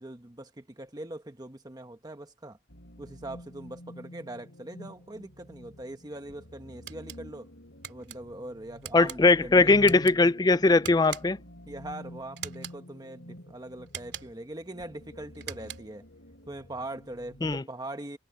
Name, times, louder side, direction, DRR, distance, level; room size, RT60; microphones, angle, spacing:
voice 1, 0.0-2.6 3.0-7.5 7.9-9.7 11.7-16.0 16.5-18.2, right 1 dB, 20° right, 1.1 m, -41 dB
sound 1, 2.7-17.6, equal, 75° left, 3.1 m, -49 dB
sound 2, 6.9-7.2 7.8-8.2 8.8-9.2 9.8-10.2 10.8-11.5 12.4-12.8 13.9-14.4 15.3-16.0, right 9 dB, 60° right, 3.5 m, -42 dB
voice 2, 8.9-11.4 17.4-17.6, left 3 dB, 20° left, 0.4 m, -20 dB
head